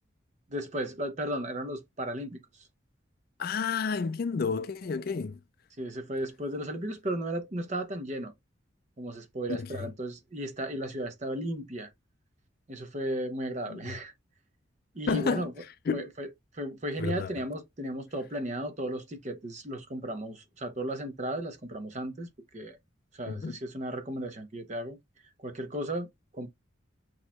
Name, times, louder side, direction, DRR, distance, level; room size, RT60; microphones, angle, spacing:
voice 1, 0.5-2.4 5.8-8.3 9.0-11.9 12.7-14.1 14.9-15.5 15.9-16.3 16.5-22.8 23.1-25.0 25.4-26.5, right 1 dB, 35° right, 0.8 m, -35 dB
voice 2, 3.4-5.4 9.6-9.9 13.7-13.9 15.1-15.5 15.9-16.1 17.0-17.3 23.3-23.6, left 5 dB, 50° left, 0.4 m, -31 dB
6.4 x 3.0 x 2.3 m
head